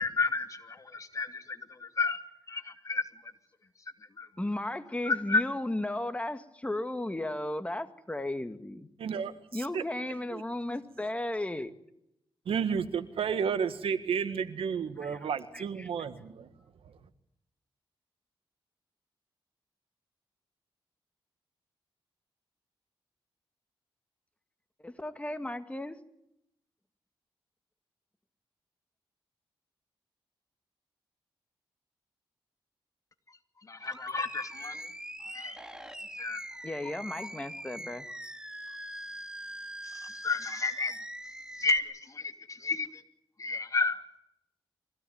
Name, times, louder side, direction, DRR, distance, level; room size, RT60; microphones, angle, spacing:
voice 1, 0.0-2.2 2.5-3.0 4.2-4.3 5.0-5.4 33.7-34.9 35.2-35.6 36.2-36.4 39.8-40.9 41.6-43.0 43.4-44.0, left 3 dB, 35° left, 7 dB, 2.7 m, -31 dB
voice 2, 4.4-8.9 9.5-11.7 15.0-15.9 24.8-26.0 36.6-38.1, left 1 dB, 15° left, 9 dB, 2.0 m, -35 dB
voice 3, 9.0-9.3 9.7-9.8 10.3-10.4 12.4-16.5, right 7 dB, 85° right, 12 dB, 1.7 m, -31 dB
Animal, 33.8-41.8, right 1 dB, 10° right, 2.6 m, -42 dB
24.0 x 16.5 x 9.5 m, 0.80 s
cardioid pair, 70°, 9 cm